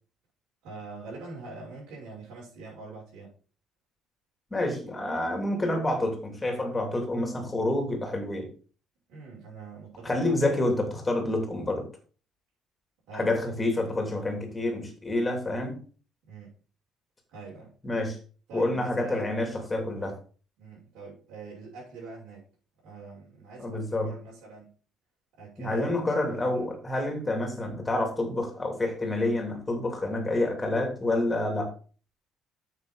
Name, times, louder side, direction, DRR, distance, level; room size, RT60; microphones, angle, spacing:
voice 1, 0.6-3.3 9.1-10.6 13.1-13.5 16.3-16.5 17.3-17.7 18.5-19.4 20.6-22.5 22.8-24.7 25.4-26.0 26.3-26.7, right 4 dB, 80° right, -7 dB, 6.1 m, -44 dB
voice 2, 4.5-8.5 10.0-11.9 13.1-15.8 17.8-18.2 18.5-20.2 23.6-24.1 25.6-31.7, left 2 dB, 10° left, 3 dB, 2.9 m, -28 dB
9.7 x 7.9 x 4.0 m, 0.38 s
cardioid pair, 165°, 0 cm